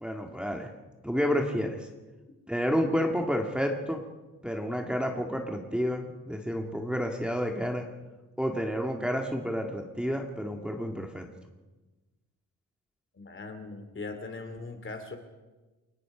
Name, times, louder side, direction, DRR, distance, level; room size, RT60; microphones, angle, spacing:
voice 1, 0.0-0.7 1.0-1.9 2.5-4.0 4.4-7.9 8.4-11.2, equal, 5° right, 2 dB, 1.9 m, -30 dB
voice 2, 13.1-15.2, left 3 dB, 40° left, 8 dB, 2.9 m, -40 dB
29.0 x 18.0 x 5.0 m, 1.2 s
cardioid pair, 110°, 32 cm